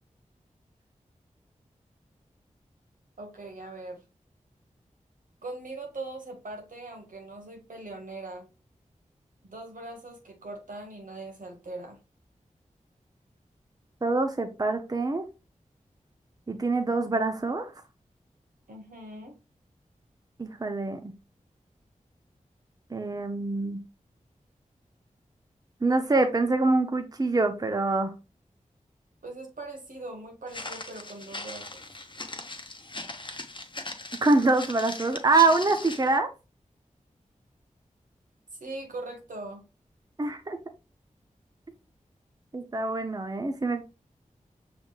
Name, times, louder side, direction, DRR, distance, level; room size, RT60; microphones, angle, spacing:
voice 1, 3.2-4.0 5.4-8.5 9.4-12.0 18.7-19.3 29.2-31.8 38.5-39.6, right 2 dB, 80° right, 2 dB, 1.3 m, -41 dB
voice 2, 14.0-15.3 16.5-17.7 20.4-21.0 22.9-23.8 25.8-28.1 34.2-36.3 40.2-40.6 42.5-43.8, right 3 dB, 30° right, 7 dB, 0.6 m, -25 dB
Walk footsteps, 30.5-36.2, left 2 dB, 35° left, 0.9 m, -40 dB
5.9 x 3.5 x 2.3 m, 0.30 s
cardioid pair, 40°, 14 cm